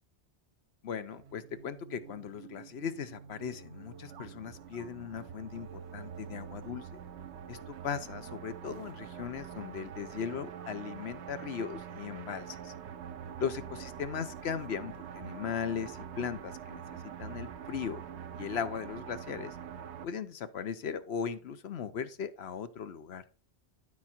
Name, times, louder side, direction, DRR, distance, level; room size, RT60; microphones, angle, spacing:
voice 1, 0.8-7.0 7.5-7.6 7.8-12.7 13.4-16.8 17.2-18.0 18.4-19.6 20.0-23.2, left 7 dB, 70° left, 12 dB, 1.0 m, -38 dB
sound 1, 1.1-20.1, right 8 dB, 80° right, 1.0 m, -45 dB
12.0 x 4.8 x 4.3 m, 0.38 s
omnidirectional pair, 1.1 m